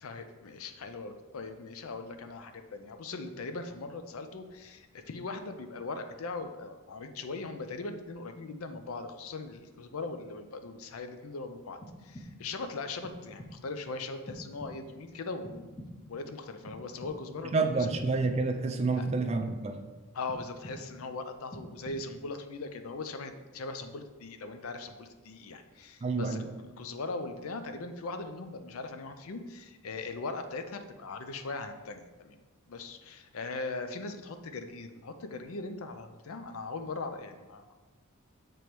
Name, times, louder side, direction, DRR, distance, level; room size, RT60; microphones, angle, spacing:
voice 1, 0.0-15.8 16.1-17.9 19.0-19.1 20.1-26.4 26.8-32.4 32.7-37.6, left 3 dB, 75° left, 8 dB, 0.5 m, -40 dB
sound 1, 11.8-12.6 13.0-13.8 14.3-15.1 15.4-16.2 16.7-17.5 17.9-18.7 19.1-19.9 20.3-21.1 21.5-22.3, left 1 dB, 10° left, 0.7 m, -47 dB
voice 2, 17.5-19.8 26.0-26.5, right 3 dB, 30° right, 5 dB, 0.3 m, -29 dB
6.8 x 3.0 x 4.6 m, 1.2 s
head